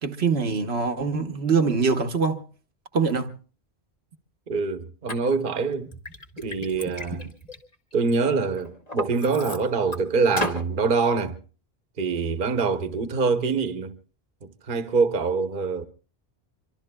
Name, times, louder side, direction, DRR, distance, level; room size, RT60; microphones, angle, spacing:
voice 1, 0.0-2.4 2.9-3.3, right 5 dB, 80° right, 1.2 m, -23 dB
voice 2, 4.5-5.9 6.4-7.3 7.9-11.4 12.0-13.9 14.7-15.9, right 4 dB, 55° right, 1.1 m, -24 dB
Liquid, 5.1-5.2 5.7-8.1 8.6-10.0 10.4-10.6, left 1 dB, 35° left, 2.1 m, -33 dB
26.0 x 24.0 x 2.2 m
omnidirectional pair, 1.1 m